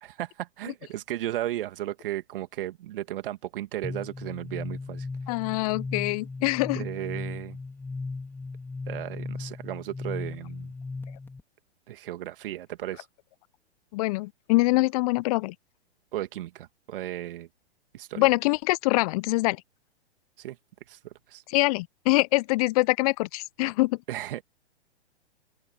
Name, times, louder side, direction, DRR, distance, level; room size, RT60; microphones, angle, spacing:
voice 1, 0.0-5.1 6.7-7.6 8.9-10.7 11.9-13.0 16.1-17.5 17.9-18.3 20.4-20.6 20.9-21.0 21.3-21.4 24.1-24.4, right 13 dB, 55° right, 2.4 m, -35 dB
sound 1, 3.8-11.4, left 3 dB, 5° left, 3.7 m, -37 dB
voice 2, 5.3-6.8 13.9-15.5 18.2-19.6 21.5-24.0, left 22 dB, 35° left, 0.7 m, -24 dB
open air
figure-of-eight pair, 115°, 33 cm